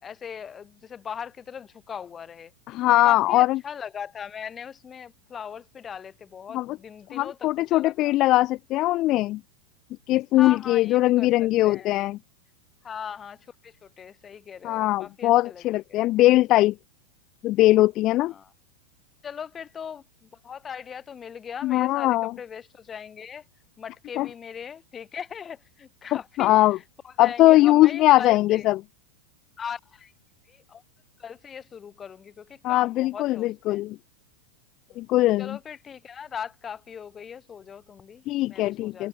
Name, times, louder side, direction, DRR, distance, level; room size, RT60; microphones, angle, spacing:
voice 1, 0.0-2.5 3.0-8.2 10.3-12.0 12.8-16.0 18.2-18.5 19.2-23.4 23.8-28.7 29.6-30.1 30.5-30.8 31.2-33.8 34.9-35.0 35.4-39.1, left 7 dB, 20° left, 4.1 m, -39 dB
voice 2, 2.7-3.6 6.5-6.7 7.1-9.4 10.1-12.2 14.6-16.7 17.4-18.3 21.6-22.3 24.2-24.3 26.4-26.8 27.2-28.8 32.6-34.0 35.0-35.6 38.3-39.1, left 17 dB, 35° left, 0.6 m, -20 dB
figure-of-eight pair, 90°, 0 cm